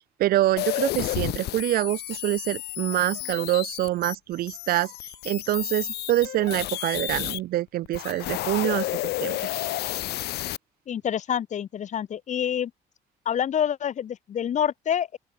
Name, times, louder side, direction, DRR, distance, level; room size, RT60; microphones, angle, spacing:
voice 1, 0.2-8.9 9.2-9.4, right 15 dB, 60° right, 0.5 m, -25 dB
sound 1, 0.6-7.4 7.8-10.6, left 16 dB, 75° left, 1.0 m, -31 dB
voice 2, 10.9-12.7 13.2-15.2, left 9 dB, 45° left, 1.2 m, -27 dB
open air
cardioid pair, 110°, 17 cm